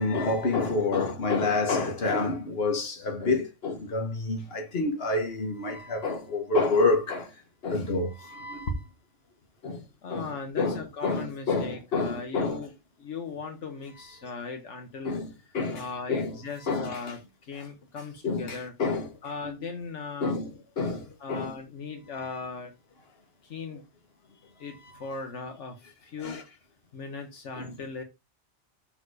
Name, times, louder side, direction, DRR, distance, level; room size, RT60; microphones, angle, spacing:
voice 1, 0.0-7.3 7.6-8.8 9.6-9.8 10.1-10.3 10.6-12.6 15.0-16.4 16.7-17.2 18.2-19.1 20.2-21.5 24.9-25.0 26.2-26.4 27.6-27.7, left 3 dB, 55° left, 1.6 m, -28 dB
voice 2, 10.0-12.7 13.0-15.1 15.7-17.2 17.5-18.7 19.2-20.4 21.2-22.7 23.5-23.8 24.6-25.7 26.0-26.4 26.9-28.0, left 4 dB, 75° left, 1.3 m, -38 dB
6.6 x 3.5 x 4.8 m
omnidirectional pair, 1.2 m